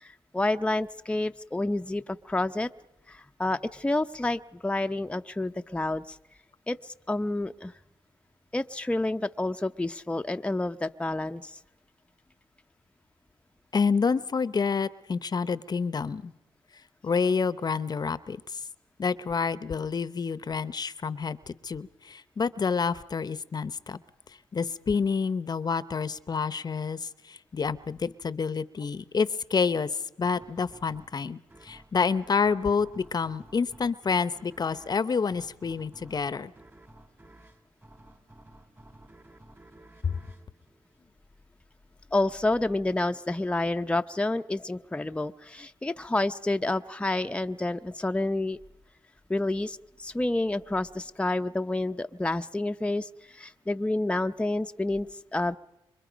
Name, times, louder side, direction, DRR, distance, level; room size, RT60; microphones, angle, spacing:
voice 1, 0.0-2.7 3.1-6.2 6.7-7.7 8.5-11.6 42.1-48.6 49.3-55.6, left 2 dB, 10° left, 7 dB, 0.7 m, -29 dB
voice 2, 13.7-16.3 17.0-18.6 19.0-24.0 24.5-36.5 40.0-40.2, left 5 dB, 40° left, 16 dB, 0.8 m, -28 dB
sound 1, 30.2-41.5, right 1 dB, 20° right, 2.5 m, -54 dB
26.5 x 23.5 x 5.2 m, 0.94 s
cardioid pair, 75°, 10 cm